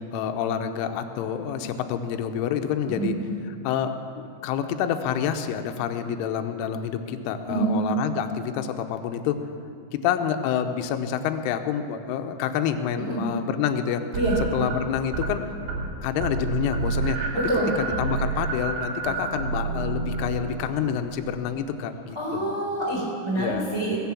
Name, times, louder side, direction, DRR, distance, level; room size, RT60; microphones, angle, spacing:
voice 1, 0.0-3.2 3.6-9.4 9.9-14.0 14.5-15.5 16.0-17.2 17.8-22.6 23.3-23.7, left 8 dB, 80° left, 7 dB, 3.1 m, -28 dB
sound 1, 14.1-15.3 15.6-15.9 16.2-21.0, right 4 dB, 55° right, 3.7 m, -29 dB
voice 2, 17.3-17.7 22.1-24.0, right 2 dB, 10° right, -5 dB, 2.1 m, -26 dB
21.5 x 7.6 x 7.1 m, 2.4 s
omnidirectional pair, 5.9 m